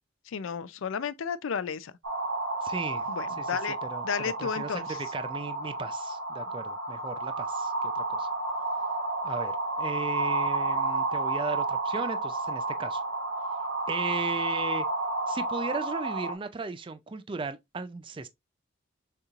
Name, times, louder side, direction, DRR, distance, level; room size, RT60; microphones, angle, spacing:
voice 1, 0.3-1.9 3.1-3.8 4.0-4.9, left 7 dB, 85° left, 0.4 m, -32 dB
sound 1, 2.0-16.4, right 2 dB, 80° right, 1.0 m, -31 dB
voice 2, 2.6-3.1 3.4-4.1 4.4-8.3 9.2-13.0 13.9-14.9 15.3-18.3, right 4 dB, 25° right, 0.4 m, -36 dB
6.5 x 2.9 x 2.4 m
head